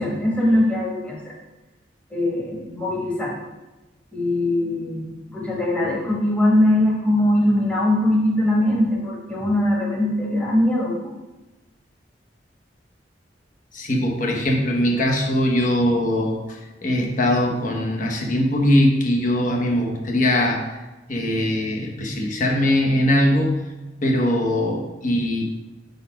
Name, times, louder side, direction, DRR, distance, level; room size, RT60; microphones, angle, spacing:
voice 1, 0.0-1.3 2.1-3.4 4.1-11.1, left 1 dB, 10° left, -3 dB, 1.2 m, -21 dB
voice 2, 13.7-20.6 21.1-23.6 24.0-25.4, left 1 dB, 45° left, 0 dB, 1.0 m, -21 dB
5.1 x 4.1 x 5.7 m, 1.1 s
head